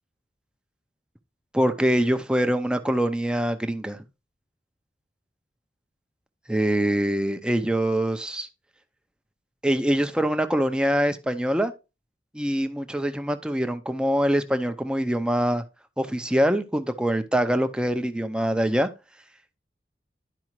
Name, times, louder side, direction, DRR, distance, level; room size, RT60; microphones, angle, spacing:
voice 1, 1.5-4.0 6.5-8.5 9.6-11.7 12.3-15.6 16.0-18.9, equal, 5° right, 0.5 m, -24 dB
11.0 x 4.8 x 3.0 m
head